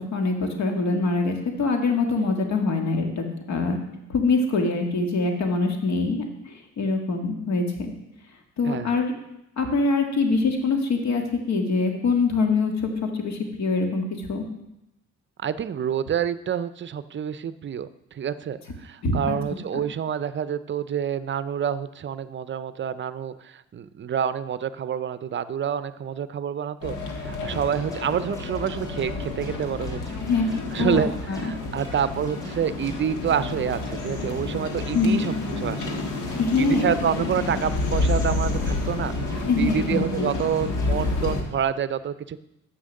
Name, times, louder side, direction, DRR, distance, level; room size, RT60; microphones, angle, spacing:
voice 1, 0.0-3.8 4.1-7.9 8.6-9.1 9.6-14.4 19.0-19.4 19.7-19.8 30.2-31.5 34.9-35.3 36.4-36.9 39.4-40.3, left 3 dB, 65° left, 4 dB, 1.7 m, -24 dB
voice 2, 8.6-9.0 15.4-27.0 27.2-30.0 30.7-31.1 31.4-36.3 36.6-42.4, right 8 dB, 40° right, 14 dB, 0.5 m, -28 dB
sound 1, 26.8-41.4, left 2 dB, 90° left, 1.5 m, -29 dB
sound 2, 27.5-41.2, left 1 dB, 10° left, 3.2 m, -43 dB
7.8 x 6.3 x 6.4 m, 0.84 s
cardioid pair, 90°, 30 cm